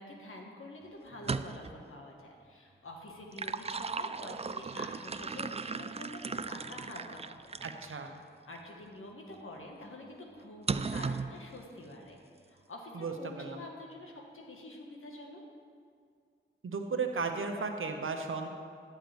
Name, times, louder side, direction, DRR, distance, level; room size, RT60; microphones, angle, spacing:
voice 1, 0.0-7.5 8.5-12.2 12.5-15.4, left 1 dB, 80° left, 0 dB, 1.5 m, -47 dB
sound 1, 1.1-1.8 3.1-7.9 8.6-8.7 10.7-11.3, right 4 dB, 30° right, 0.3 m, -36 dB
voice 2, 7.6-8.1 12.9-13.6 16.6-18.5, right 4 dB, 75° right, 5 dB, 0.9 m, -35 dB
11.0 x 9.0 x 3.4 m, 2.2 s
cardioid pair, 40°, 21 cm